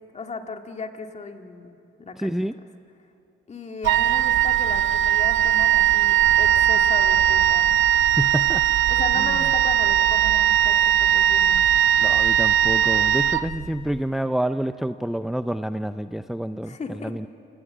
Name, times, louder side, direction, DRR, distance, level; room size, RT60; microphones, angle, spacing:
voice 1, 0.1-2.4 3.5-7.7 8.9-11.7 16.6-17.2, left 4 dB, 35° left, 5 dB, 2.1 m, -36 dB
voice 2, 2.2-2.5 8.2-8.6 9.2-9.5 12.0-17.3, right 1 dB, ahead, 11 dB, 0.5 m, -28 dB
Wind instrument woodwind instrument, 3.8-13.9, right 10 dB, 75° right, 0.6 m, -19 dB
28.5 x 18.0 x 8.8 m, 2.7 s
cardioid pair, 90°, 20 cm